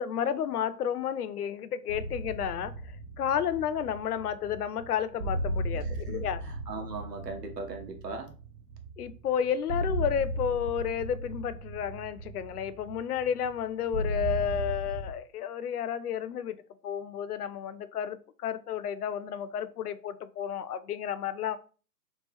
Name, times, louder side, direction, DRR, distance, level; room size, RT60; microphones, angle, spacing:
voice 1, 0.0-6.4 9.0-21.6, left 8 dB, 70° left, 0.6 m, -32 dB
sound 1, 1.9-15.1, right 1 dB, 65° right, 0.7 m, -36 dB
voice 2, 6.1-8.3, right 3 dB, 90° right, 1.2 m, -39 dB
3.2 x 2.9 x 3.3 m
hypercardioid pair, 150°, 48 cm